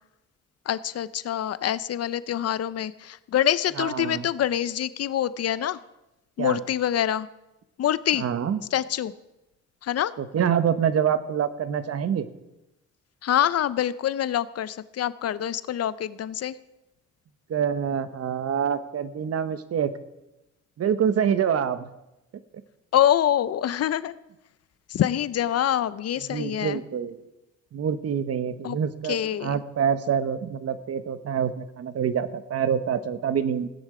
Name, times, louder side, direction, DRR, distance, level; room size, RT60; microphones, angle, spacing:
voice 1, 0.7-5.8 6.4-7.3 7.8-8.2 8.7-9.1 9.8-10.1 13.2-16.6 22.9-24.1 24.9-26.8 28.6-28.8 29.1-29.6, left 11 dB, 55° left, 16 dB, 0.6 m, -25 dB
voice 2, 3.8-4.3 6.4-6.6 8.1-8.6 10.2-12.3 17.5-19.9 20.8-21.9 26.3-27.2 27.7-33.7, right 8 dB, 55° right, 13 dB, 1.0 m, -26 dB
16.0 x 9.7 x 4.9 m, 0.94 s
cardioid pair, 90°, 30 cm